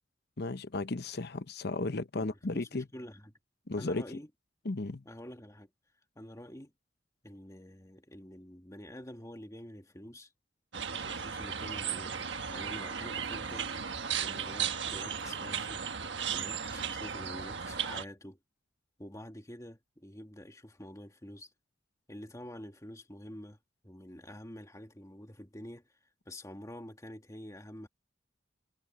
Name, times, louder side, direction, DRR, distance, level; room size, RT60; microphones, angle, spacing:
voice 1, 0.4-2.9 3.7-4.0 4.6-5.0, left 2 dB, 60° left, 0.9 m, -34 dB
voice 2, 2.1-3.4 3.8-4.3 5.0-5.7 6.2-6.7 7.2-10.3 10.9-13.7 14.2-15.8 16.3-18.4 19.0-21.5 22.1-23.6 23.8-25.9 26.3-27.9, left 1 dB, 15° left, 2.1 m, -47 dB
sound 1, 10.7-18.0, right 7 dB, 70° right, 1.5 m, -36 dB
head